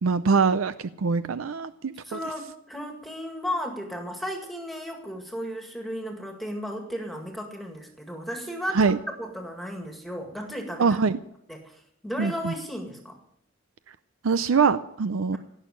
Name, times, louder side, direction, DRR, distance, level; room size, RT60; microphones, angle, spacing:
voice 1, 0.0-2.2 8.7-9.0 10.8-11.2 12.2-12.5 14.2-15.4, right 5 dB, 80° right, 13 dB, 0.5 m, -23 dB
voice 2, 2.0-11.0 11.5-13.2, equal, ahead, 2 dB, 1.9 m, -34 dB
17.5 x 6.5 x 9.9 m, 0.77 s
head